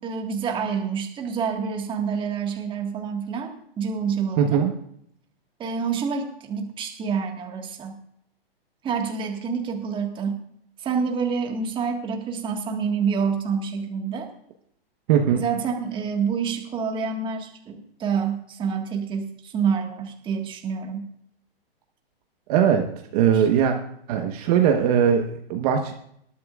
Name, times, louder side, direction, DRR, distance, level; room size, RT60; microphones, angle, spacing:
voice 1, 0.0-4.6 5.6-8.0 8.8-10.4 10.8-14.3 15.3-21.1 23.3-23.5, right 6 dB, 15° right, 3 dB, 1.7 m, -27 dB
voice 2, 4.4-4.7 15.1-15.4 22.5-22.9 23.1-23.8 24.1-25.9, right 8 dB, 40° right, 4 dB, 1.3 m, -20 dB
20.0 x 12.0 x 2.5 m, 0.70 s
hypercardioid pair, 145°, 30 cm